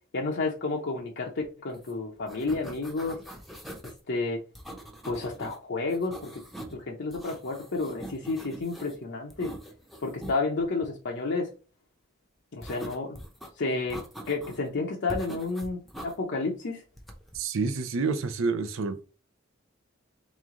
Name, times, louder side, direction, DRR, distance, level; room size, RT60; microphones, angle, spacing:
voice 1, 0.1-3.2 4.1-4.4 5.0-6.4 6.7-9.5 10.0-11.5 12.5-13.2 13.6-16.8, left 3 dB, 60° left, 0.7 m, -31 dB
sound 1, 1.7-1.9 2.2-4.0 4.6-5.6 5.9-6.8 7.1-9.0 9.3-10.4 12.6-13.5 13.9-14.7 15.1-16.1 17.0-17.4, right 1 dB, ahead, 0.7 m, -43 dB
voice 2, 17.3-19.0, right 4 dB, 80° right, 0.6 m, -28 dB
3.5 x 3.2 x 3.7 m
head